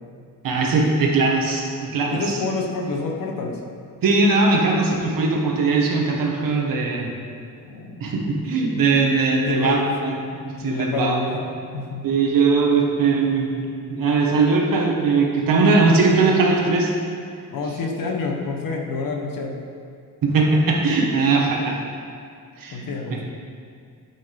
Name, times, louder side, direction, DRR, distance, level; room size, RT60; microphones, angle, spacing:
voice 1, 0.4-2.2 4.0-7.1 8.0-11.2 12.0-16.9 20.2-21.8 22.6-22.9, right 3 dB, 65° right, 0 dB, 1.6 m, -20 dB
voice 2, 2.1-3.6 7.6-8.1 9.4-10.0 10.6-11.5 11.7-12.0 17.5-19.6 22.7-23.2, left 3 dB, 70° left, 1 dB, 1.3 m, -28 dB
13.0 x 8.5 x 3.5 m, 2.2 s
wide cardioid pair, 175°, 35 cm